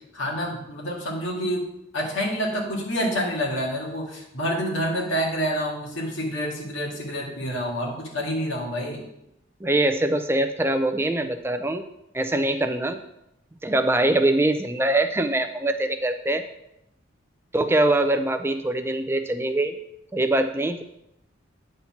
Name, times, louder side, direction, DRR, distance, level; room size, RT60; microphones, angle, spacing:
voice 1, 0.1-1.6 1.9-9.0, equal, 80° left, -2 dB, 2.0 m, -28 dB
voice 2, 9.6-11.8 12.1-13.0 13.6-16.4 17.5-19.8 20.1-20.8, right 1 dB, 10° right, 8 dB, 0.4 m, -23 dB
9.2 x 4.3 x 5.8 m, 0.83 s
head